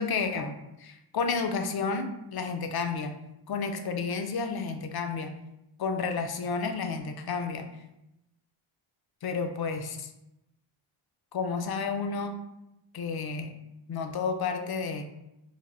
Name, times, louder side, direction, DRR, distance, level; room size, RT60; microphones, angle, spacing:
voice 1, 0.0-3.1 3.5-5.3 5.8-7.8 9.2-10.1 11.3-12.4 12.9-13.5 13.9-15.0, left 5 dB, 50° left, 6 dB, 0.5 m, -31 dB
3.3 x 2.1 x 2.5 m, 0.88 s
cardioid pair, 60°, 50 cm